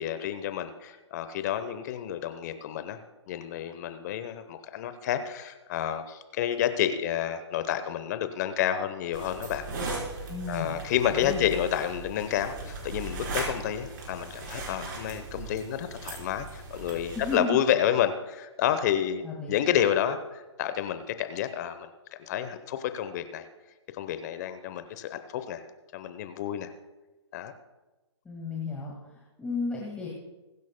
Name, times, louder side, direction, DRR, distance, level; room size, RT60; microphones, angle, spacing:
voice 1, 0.0-3.0 3.3-9.6 10.5-23.4 24.0-25.6 25.9-26.7 27.3-27.5, left 10 dB, 35° left, 10 dB, 0.9 m, -30 dB
sound 1, 9.1-17.4, right 3 dB, 45° right, 4.0 m, -38 dB
voice 2, 10.3-10.7 11.1-11.4 17.1-17.6 19.2-19.5 28.3-30.1, left 3 dB, 10° left, -4 dB, 1.8 m, -33 dB
21.5 x 10.5 x 2.2 m, 1.1 s
hypercardioid pair, 140°, 15 cm